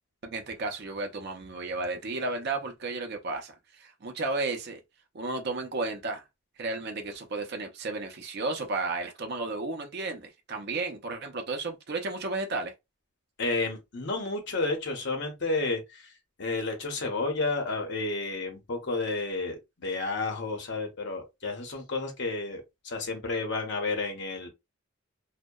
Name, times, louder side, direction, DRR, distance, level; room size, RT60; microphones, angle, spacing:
voice 1, 0.3-4.8 5.1-6.2 6.6-12.7, right 3 dB, 50° right, 0.5 m, -33 dB
voice 2, 13.4-16.0 16.4-24.5, left 3 dB, 55° left, 0.8 m, -31 dB
2.7 x 2.1 x 2.2 m
head